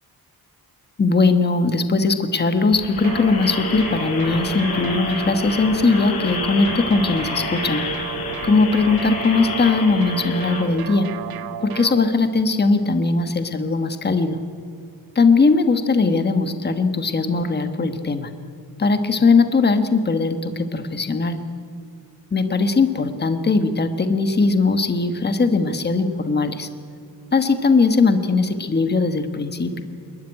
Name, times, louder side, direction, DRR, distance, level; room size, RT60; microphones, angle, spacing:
voice 1, 1.0-7.8 8.4-11.1 11.6-14.4 15.1-18.3 18.8-21.4 22.3-26.7 27.3-29.8, left 4 dB, 25° left, 8 dB, 1.3 m, -19 dB
sound 1, 2.6-10.6, left 4 dB, 75° left, 5.2 m, -30 dB
sound 2, 3.0-12.1, right 9 dB, 75° right, 1.0 m, -32 dB
28.0 x 13.0 x 9.8 m, 2.4 s
wide cardioid pair, 175°, 37 cm